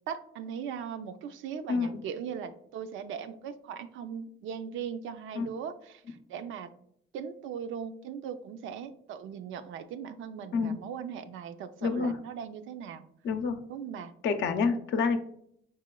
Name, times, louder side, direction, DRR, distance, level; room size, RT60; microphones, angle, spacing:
voice 1, 0.1-6.7 7.1-13.0 13.7-14.1, right 7 dB, 80° right, 10 dB, 0.4 m, -39 dB
voice 2, 11.8-12.1 13.2-13.6 14.2-15.2, left 5 dB, 70° left, 6 dB, 0.5 m, -27 dB
5.7 x 3.0 x 2.2 m, 0.70 s
cardioid pair, 90°, 20 cm